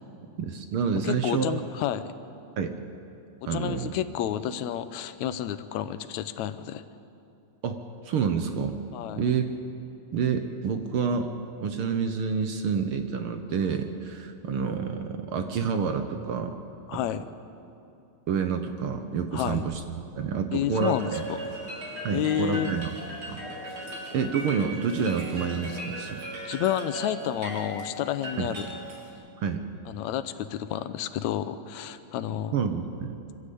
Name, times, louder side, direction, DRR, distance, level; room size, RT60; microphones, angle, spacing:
voice 1, 0.4-1.6 2.6-2.7 3.5-3.9 7.6-8.8 9.2-9.4 10.1-11.3 11.6-16.5 16.9-17.0 18.3-19.8 20.1-21.2 22.0-22.9 23.3-23.4 24.1-26.2 28.4-28.5 29.4-29.6 32.5-33.1, right 6 dB, 60° right, 7 dB, 1.5 m, -28 dB
voice 2, 1.0-2.1 3.5-6.8 8.9-9.2 16.9-17.2 19.3-19.6 20.5-21.4 22.1-22.7 26.2-28.7 29.9-32.6, left 11 dB, 80° left, 12 dB, 2.1 m, -30 dB
sound 1, 20.7-29.1, right 1 dB, 45° right, 4.5 m, -38 dB
24.5 x 15.0 x 8.4 m, 2.7 s
omnidirectional pair, 3.3 m